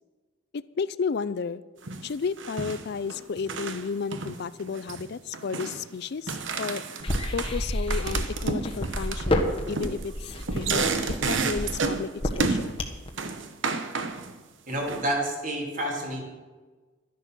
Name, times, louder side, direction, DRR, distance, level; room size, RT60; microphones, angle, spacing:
voice 1, 0.8-1.6 2.0-6.8 7.3-12.8, left 5 dB, 55° left, 17 dB, 0.4 m, -32 dB
sound 1, 1.8-2.1 2.4-3.8 4.1-5.1 5.3-5.9 6.3-7.6 7.9-12.1 12.4-12.8 13.2-14.3 14.7-15.0, right 4 dB, 70° right, 1.0 m, -31 dB
sound 2, 7.0-13.1, left 1 dB, 30° left, 1.3 m, -29 dB
voice 2, 14.7-16.2, right 1 dB, 40° right, -1 dB, 3.1 m, -29 dB
12.5 x 10.0 x 6.1 m, 1.3 s
head